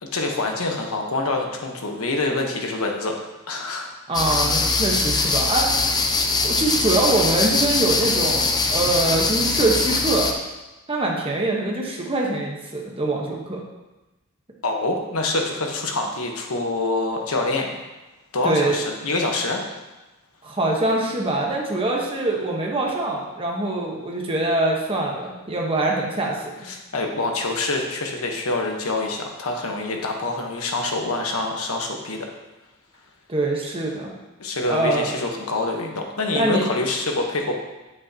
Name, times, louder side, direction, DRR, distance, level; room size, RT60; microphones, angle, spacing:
voice 1, 0.0-3.2 3.5-3.9 14.6-17.7 18.3-19.6 26.6-32.3 34.4-37.5, left 2 dB, 80° left, 2 dB, 1.2 m, -26 dB
sound 1, 4.1-10.3, left 3 dB, 20° left, 0.6 m, -22 dB
voice 2, 4.1-6.0 6.4-10.3 10.9-13.6 18.4-18.8 20.4-26.7 33.3-34.1 34.7-35.1 36.3-36.7, right 2 dB, 25° right, -2 dB, 1.2 m, -24 dB
8.6 x 8.2 x 2.9 m, 1.1 s
head